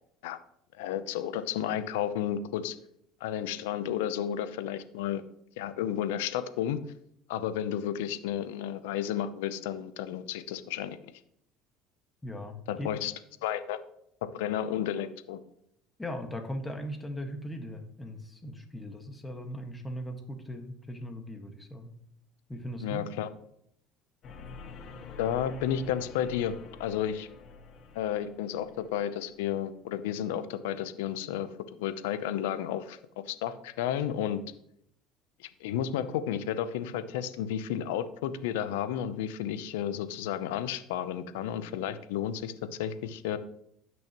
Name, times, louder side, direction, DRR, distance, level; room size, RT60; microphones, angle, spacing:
voice 1, 0.8-2.8 3.2-5.2 5.6-6.8 7.3-11.0 12.7-13.1 13.4-13.8 14.2-15.4 22.8-23.3 25.2-27.3 27.9-31.5 31.8-33.0 33.3-34.4 35.4-42.5 42.8-43.4, left 10 dB, 90° left, 12 dB, 0.7 m, -32 dB
voice 2, 12.2-12.9 16.0-21.9 22.5-23.0, equal, 15° left, 4 dB, 1.6 m, -39 dB
sound 1, 24.2-29.5, left 4 dB, 50° left, 1.5 m, -47 dB
16.0 x 6.3 x 3.0 m, 0.72 s
supercardioid pair, 100°, 0 cm